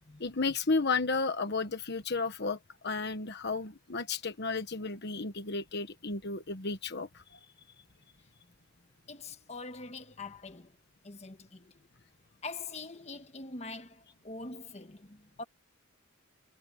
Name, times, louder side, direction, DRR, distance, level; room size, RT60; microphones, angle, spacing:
voice 1, 0.2-2.6 2.8-7.4, left 4 dB, 50° left, 1.3 m, -33 dB
voice 2, 9.1-10.8 11.0-11.9 12.4-15.4, left 3 dB, 30° left, 1.5 m, -44 dB
head